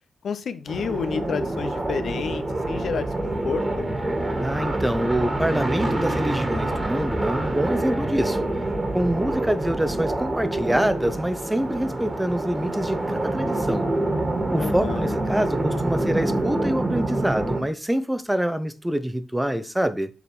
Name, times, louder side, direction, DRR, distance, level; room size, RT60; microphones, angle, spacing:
voice 1, 0.2-3.9 14.6-15.1, left 6 dB, 70° left, 0.7 m, -30 dB
sound 1, 0.7-17.6, right 1 dB, 30° right, 2.1 m, -26 dB
voice 2, 4.4-8.4 8.9-13.9 14.5-20.1, right 1 dB, 10° right, 0.9 m, -25 dB
7.0 x 3.6 x 6.2 m
cardioid pair, 65°, 0 cm